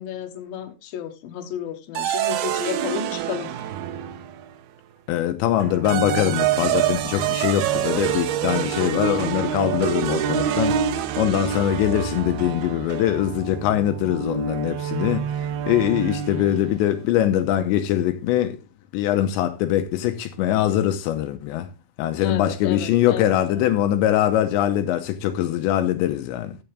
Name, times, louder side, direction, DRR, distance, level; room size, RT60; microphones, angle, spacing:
voice 1, 0.0-3.5 22.2-23.8, left 9 dB, 65° left, 2.8 m, -32 dB
sound 1, 1.9-4.5 5.6-16.7, right 9 dB, 75° right, 2.6 m, -26 dB
voice 2, 5.1-10.8 11.2-15.3 15.7-18.6 18.9-21.7 22.0-26.6, left 12 dB, 85° left, 3.1 m, -22 dB
14.5 x 7.0 x 3.4 m
omnidirectional pair, 5.2 m